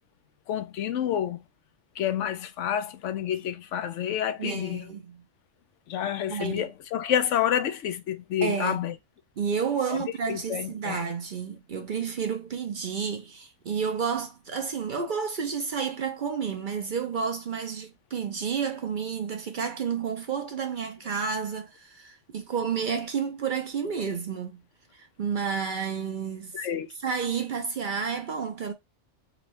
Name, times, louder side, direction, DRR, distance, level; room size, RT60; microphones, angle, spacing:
voice 1, 0.5-1.4 2.0-4.8 5.9-8.9 9.9-10.0 10.3-11.0 11.8-11.9 26.5-26.9, left 10 dB, 85° left, 1.0 m, -29 dB
voice 2, 4.4-5.2 6.3-6.7 8.4-8.8 9.4-24.6 24.9-26.7 27.0-28.7, right 6 dB, 50° right, 0.7 m, -31 dB
4.1 x 2.6 x 3.0 m
omnidirectional pair, 1.2 m